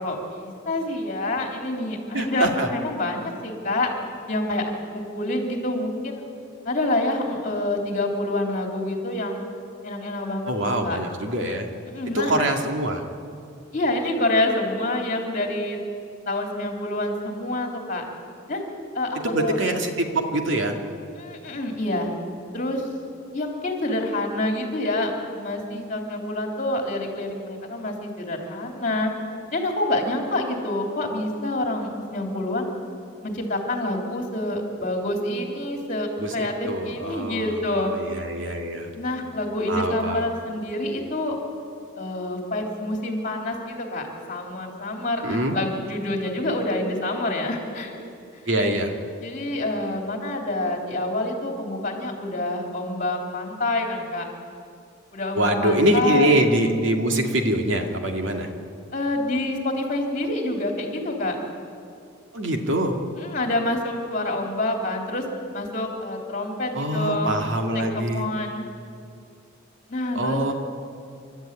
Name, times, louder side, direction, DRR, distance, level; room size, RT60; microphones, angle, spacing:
voice 1, 0.0-3.9 4.3-4.6 4.9-6.2 6.6-9.4 9.8-10.5 10.8-11.0 11.9-12.3 13.7-15.8 16.3-18.0 18.5-18.6 18.9-19.5 21.1-22.1 22.5-22.9 23.3-29.1 29.5-32.7 33.2-37.9 38.9-41.4 42.0-48.0 49.2-54.3 55.1-56.5 58.9-61.3 63.1-65.2 65.5-67.4 67.7-68.7 69.9-70.5, left 1 dB, 40° left, 2 dB, 3.4 m, -27 dB
voice 2, 2.1-2.7 10.5-11.7 12.1-13.0 19.2-20.8 36.2-37.5 37.9-38.9 39.7-40.2 45.2-45.6 48.5-48.9 55.3-58.5 62.3-63.0 66.7-68.3 70.1-70.5, right 1 dB, 65° right, 3 dB, 2.3 m, -24 dB
29.0 x 13.0 x 9.1 m, 2.4 s
head